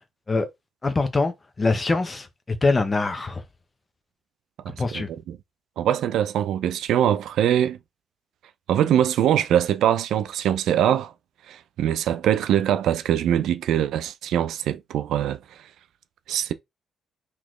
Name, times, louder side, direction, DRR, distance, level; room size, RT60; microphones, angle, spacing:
voice 1, 0.8-3.4 4.8-5.1, left 3 dB, 25° left, 0.9 m, -24 dB
voice 2, 4.6-5.4 5.8-7.8 8.7-11.1 11.5-15.6 16.3-16.5, right 10 dB, 80° right, 0.4 m, -23 dB
4.1 x 3.0 x 3.1 m
cardioid pair, 90°, 0 cm